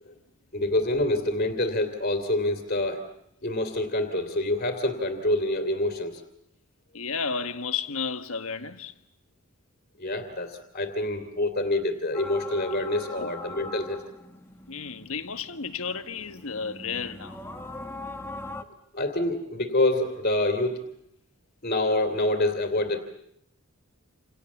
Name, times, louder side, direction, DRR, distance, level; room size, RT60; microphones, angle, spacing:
voice 1, 0.5-3.0 3.4-6.2 10.0-14.0 18.9-20.8 21.6-23.0, left 1 dB, 45° left, 2.8 m, -26 dB
voice 2, 6.9-9.0 13.2-13.3 14.7-17.5, left 5 dB, 70° left, 1.5 m, -32 dB
sound 1, 12.1-18.6, left 2 dB, 10° left, 1.6 m, -41 dB
28.5 x 28.0 x 7.3 m
head